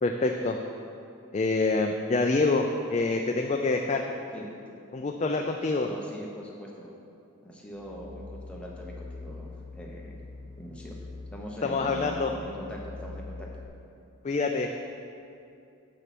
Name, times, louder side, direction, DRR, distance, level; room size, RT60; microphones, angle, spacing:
voice 1, 0.0-0.6 1.3-4.0 4.9-5.9 11.6-12.3 14.2-14.7, left 3 dB, 30° left, 3 dB, 0.3 m, -26 dB
voice 2, 5.8-6.9 7.4-9.5 9.7-10.2 10.6-10.9 11.3-13.5, equal, 5° left, -3 dB, 1.0 m, -41 dB
sound 1, 7.7-13.7, left 3 dB, 55° right, 2.2 m, -43 dB
7.4 x 6.4 x 5.9 m, 2.6 s
head